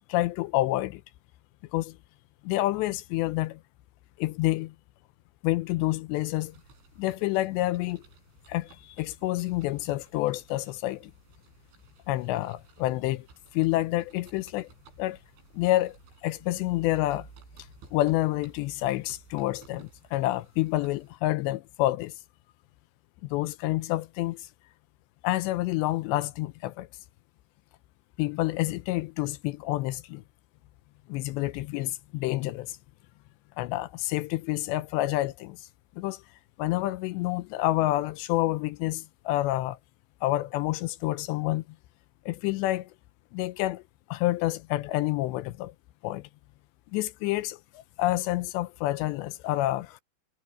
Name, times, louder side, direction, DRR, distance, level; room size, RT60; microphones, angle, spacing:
voice 1, 0.1-1.0 1.7-2.0 2.4-3.6 4.2-4.7 5.4-6.6 7.0-8.0 8.5-11.1 12.1-13.3 13.5-14.7 15.0-15.2 15.5-17.3 17.9-22.1 23.2-24.5 25.2-26.9 28.2-30.2 31.1-32.8 33.6-35.7 36.0-36.2 36.6-39.8 40.2-41.6 42.3-42.9 43.3-43.8 44.1-45.7 46.0-46.3 46.9-50.0, left 17 dB, 80° left, 2.8 m, -28 dB
sound 1, 6.2-21.2, right 5 dB, 85° right, 9.4 m, -55 dB
omnidirectional pair, 5.3 m